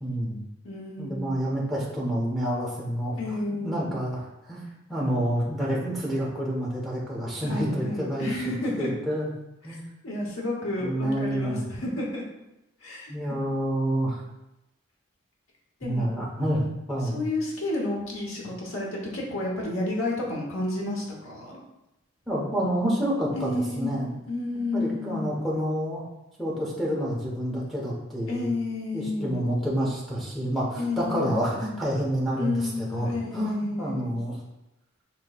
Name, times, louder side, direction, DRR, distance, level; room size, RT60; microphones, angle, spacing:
voice 1, 0.0-0.4 1.0-4.2 4.5-9.3 9.6-9.8 10.8-11.6 13.1-14.2 15.8-16.6 16.9-17.2 22.3-24.1 24.7-26.0 26.4-28.5 28.9-34.4, equal, ahead, -4 dB, 1.0 m, -28 dB
voice 2, 0.6-1.3 3.2-3.9 7.4-8.9 10.0-12.2 12.8-13.1 15.8-16.1 17.1-21.6 23.3-23.9 24.3-25.3 28.3-29.3 30.8-31.4 32.4-34.1, left 2 dB, 75° left, -2 dB, 1.1 m, -31 dB
6.4 x 3.1 x 2.4 m, 0.92 s
head